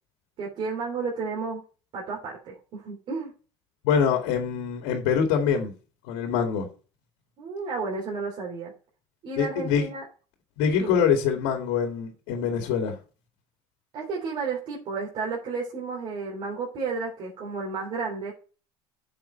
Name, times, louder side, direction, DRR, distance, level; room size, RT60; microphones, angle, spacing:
voice 1, 0.4-1.6 1.9-3.3 7.4-8.7 9.2-10.0 10.8-11.0 13.9-18.3, right 4 dB, 45° right, 3.3 m, -32 dB
voice 2, 3.8-5.7 6.1-6.7 9.4-9.9 10.6-13.0, left 7 dB, 85° left, 2.2 m, -24 dB
10.5 x 6.9 x 4.4 m
cardioid pair, 135°, 12 cm